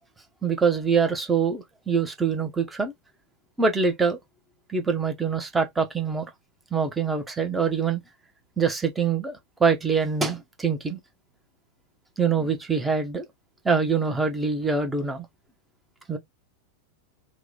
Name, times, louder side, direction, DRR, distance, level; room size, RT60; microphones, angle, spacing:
voice 1, 0.4-2.9 3.6-4.2 4.7-6.3 6.7-8.0 8.6-9.3 9.6-11.0 12.2-13.2 13.6-15.2 16.1-16.2, right 5 dB, 10° right, 0.7 m, -24 dB
3.0 x 2.1 x 3.8 m
figure-of-eight pair, 90°, 0 cm